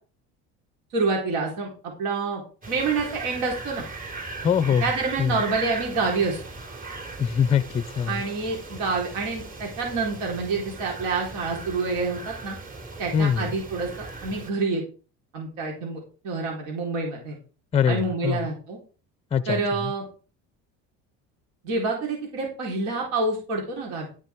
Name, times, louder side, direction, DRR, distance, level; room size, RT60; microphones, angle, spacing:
voice 1, 0.9-1.7 2.0-2.4 2.7-3.9 4.8-6.4 8.1-12.6 13.0-14.8 15.3-17.4 17.9-18.8 19.5-20.1 21.6-24.1, right 3 dB, 75° right, 4.1 m, -27 dB
sound 1, 2.6-14.5, right 3 dB, 25° right, 3.2 m, -38 dB
voice 2, 4.4-4.8 5.2-5.3 7.2-8.2 13.1-13.5 17.7-18.4 19.3-19.6, left 7 dB, 20° left, 0.5 m, -22 dB
12.5 x 6.0 x 4.5 m
cardioid pair, 125°, 31 cm